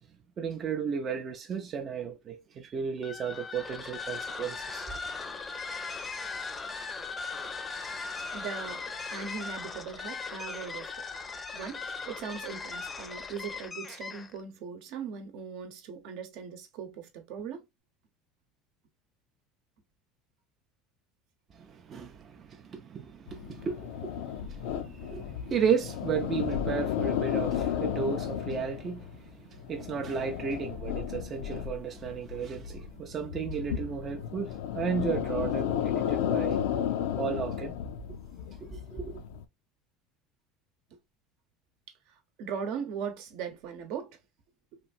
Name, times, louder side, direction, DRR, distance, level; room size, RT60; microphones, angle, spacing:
voice 1, 0.4-4.9 21.5-36.6 37.2-37.7 38.6-39.2, right 6 dB, 35° right, 0.4 m, -34 dB
sound 1, 3.0-14.4, left 4 dB, 20° left, 0.5 m, -38 dB
voice 2, 8.3-8.8 9.1-11.1 11.5-17.6 40.9-41.0 42.1-44.2 44.7-44.8, right 6 dB, 70° right, 0.8 m, -39 dB
sound 2, 23.3-39.4, left 9 dB, 90° left, 0.4 m, -33 dB
3.0 x 2.5 x 2.4 m
supercardioid pair, 125°, 0 cm